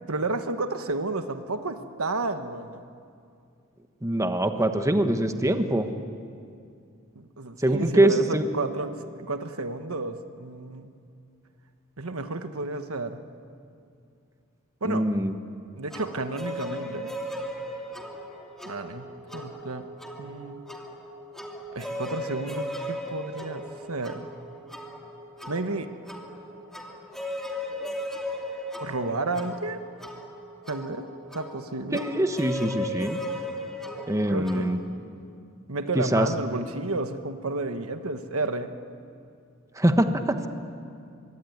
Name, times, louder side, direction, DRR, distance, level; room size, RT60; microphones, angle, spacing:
voice 1, 0.1-2.8 7.1-10.9 12.0-13.2 14.8-15.1 15.8-17.1 18.6-19.1 19.3-19.9 20.2-20.6 21.7-24.3 25.5-25.9 28.8-29.8 30.7-32.1 34.2-34.7 35.7-38.8, right 2 dB, 80° right, 8 dB, 1.4 m, -31 dB
voice 2, 4.0-5.9 7.6-8.4 14.8-15.3 31.9-33.2 34.1-34.8 35.9-36.3 39.7-40.5, right 1 dB, 15° right, 7 dB, 1.2 m, -23 dB
sound 1, 15.9-34.7, equal, ahead, 2.6 m, -37 dB
25.0 x 23.5 x 9.6 m, 2.4 s
head